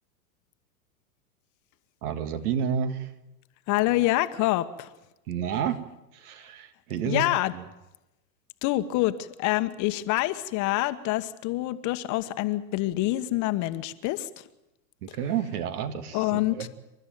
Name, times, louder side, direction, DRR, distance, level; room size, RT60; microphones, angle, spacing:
voice 1, 2.0-3.1 5.3-5.8 6.2-7.2 7.5-7.6 15.0-16.7, right 8 dB, 65° right, 9 dB, 2.2 m, -30 dB
voice 2, 3.7-4.9 7.0-7.5 8.6-14.3 16.1-16.7, left 17 dB, 40° left, 11 dB, 1.2 m, -26 dB
28.0 x 12.5 x 9.3 m, 0.96 s
hypercardioid pair, 120°, 48 cm